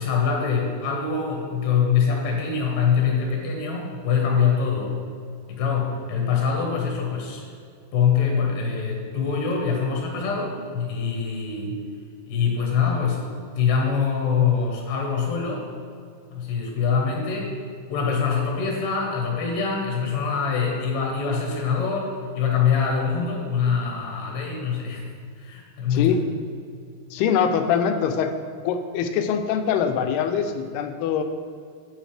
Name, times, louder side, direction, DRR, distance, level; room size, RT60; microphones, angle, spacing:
voice 1, 0.0-5.0 5.5-7.4 7.9-11.8 12.3-15.7 16.3-17.5 17.9-25.1 25.4-26.1, left 6 dB, 65° left, -1 dB, 2.5 m, -24 dB
voice 2, 25.9-26.2 27.1-28.3 28.6-31.2, left 7 dB, 85° left, 7 dB, 2.6 m, -23 dB
9.1 x 8.0 x 3.4 m, 2.3 s
omnidirectional pair, 4.6 m